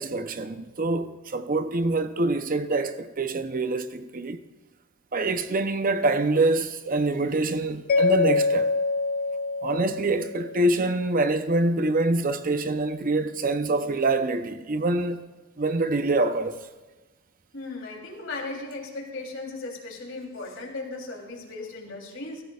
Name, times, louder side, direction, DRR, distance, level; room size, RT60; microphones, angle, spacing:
voice 1, 0.0-4.4 5.1-8.7 9.6-15.2 15.6-16.6, right 2 dB, 45° right, 0.7 m, -25 dB
Mallet percussion, 7.9-10.9, left 3 dB, 50° left, 0.3 m, -25 dB
voice 2, 17.5-22.4, left 3 dB, 70° left, 3.4 m, -37 dB
24.0 x 14.5 x 2.4 m
head